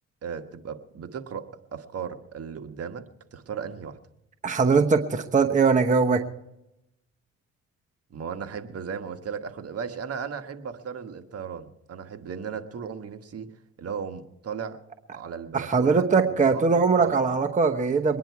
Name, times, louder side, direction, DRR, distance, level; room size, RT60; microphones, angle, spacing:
voice 1, 0.2-3.0 3.3-4.0 8.1-13.5 13.8-14.8 15.1-17.2, right 6 dB, 50° right, 6 dB, 1.5 m, -36 dB
voice 2, 4.4-6.2 15.5-18.2, right 5 dB, 25° right, 4 dB, 1.0 m, -21 dB
23.0 x 10.5 x 4.7 m, 0.86 s
cardioid pair, 90°, 30 cm